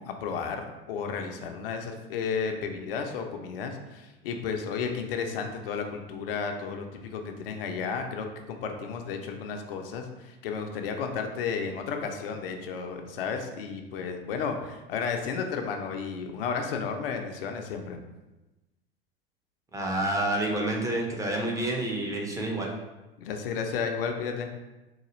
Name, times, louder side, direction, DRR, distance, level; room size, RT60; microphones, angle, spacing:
voice 1, 0.0-18.0 23.2-24.5, left 5 dB, 70° left, 4 dB, 0.5 m, -33 dB
voice 2, 19.7-22.7, right 1 dB, 10° right, -1 dB, 0.6 m, -28 dB
3.9 x 2.3 x 3.0 m, 1.0 s
figure-of-eight pair, 80°, 30 cm